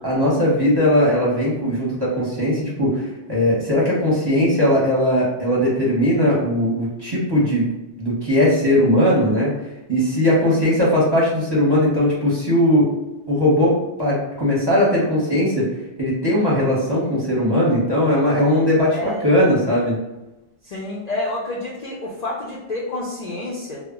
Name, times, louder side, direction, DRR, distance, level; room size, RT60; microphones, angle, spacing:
voice 1, 0.0-7.7 8.0-9.5 9.9-12.9 13.3-15.7 16.0-20.0, left 1 dB, 25° right, -6 dB, 0.7 m, -19 dB
voice 2, 18.9-19.3 20.6-23.8, left 2 dB, 55° left, -4 dB, 0.4 m, -29 dB
2.1 x 2.0 x 3.5 m, 1.0 s
omnidirectional pair, 1.2 m